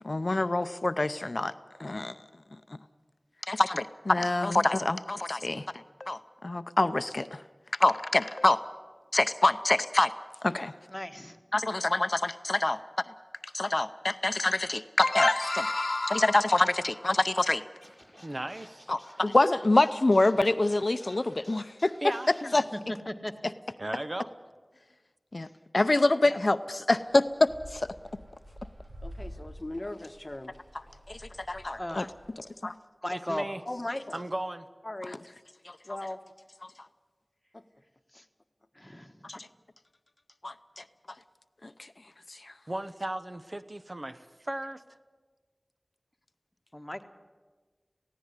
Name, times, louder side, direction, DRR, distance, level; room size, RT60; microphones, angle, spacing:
voice 1, 0.0-1.5 1.8-2.1 3.5-5.6 6.0-6.2 6.4-7.4 7.8-8.6 9.1-10.1 10.4-10.7 11.5-12.8 13.5-17.6 18.9-21.9 22.5-22.6 25.3-25.5 25.7-27.9 31.1-31.2 31.5-32.0 32.6-32.7 35.7-35.8 39.2-39.5 40.4-40.8 41.6-41.7 42.3-42.5, left 2 dB, 65° left, 12 dB, 0.6 m, -26 dB
voice 2, 10.9-11.4 22.7-22.8 23.1-23.3 26.3-26.4 31.8-32.0 33.0-33.5 38.1-38.2 38.7-39.3 46.7-47.0, left 1 dB, 20° left, 6 dB, 1.5 m, -36 dB
Scratching (performance technique), 17.8-22.6, equal, 15° right, 7.5 m, -52 dB
voice 3, 18.2-18.9 22.0-22.3 23.8-24.3 33.1-33.6 34.1-34.7 42.7-44.8, right 1 dB, 45° right, 11 dB, 0.9 m, -36 dB
sound 1, 26.9-32.4, equal, 65° right, 5.5 m, -48 dB
voice 4, 29.0-30.6 33.7-34.2 34.8-35.2 35.9-36.2 37.5-37.6, left 1 dB, 45° left, 9 dB, 1.0 m, -38 dB
18.0 x 16.0 x 9.8 m, 1.4 s
wide cardioid pair, 45°, 0 cm